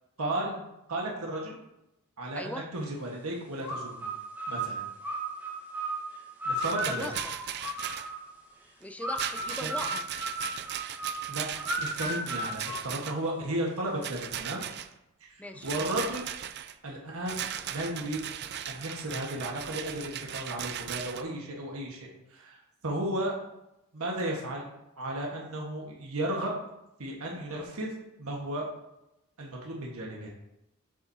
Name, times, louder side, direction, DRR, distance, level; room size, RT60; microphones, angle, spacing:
voice 1, 0.2-0.6 0.9-1.5 2.2-3.9 4.5-4.8 6.4-7.1 9.6-9.7 11.3-11.4 11.8-14.6 15.2-16.3 16.8-18.2 18.7-23.4 23.9-24.6 25.0-26.7 27.0-27.9 28.2-28.7 29.4-30.3, right 1 dB, 80° right, -1 dB, 1.4 m, -34 dB
voice 2, 2.4-2.7 6.9-7.3 8.8-10.0 15.4-15.7, left 1 dB, 5° left, 7 dB, 0.5 m, -39 dB
sound 1, 3.6-8.3 9.0-13.5, right 1 dB, 10° right, 2.1 m, -35 dB
Rattle, 6.6-8.1 9.1-13.3 14.0-14.9 15.6-16.7 17.3-21.2, right 10 dB, 50° right, 0.4 m, -37 dB
7.7 x 7.3 x 2.8 m, 0.87 s
head